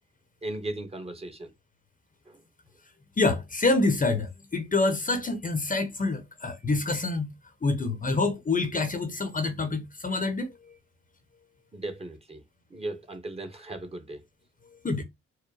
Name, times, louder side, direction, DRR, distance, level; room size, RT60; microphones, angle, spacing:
voice 1, 0.4-1.5 2.3-2.4 11.7-12.4 12.7-14.2, right 2 dB, 20° right, 1.1 m, -37 dB
voice 2, 3.2-7.3 7.6-10.8 14.8-15.0, left 3 dB, 25° left, 0.9 m, -27 dB
4.7 x 2.1 x 4.8 m
cardioid pair, 90°, 30 cm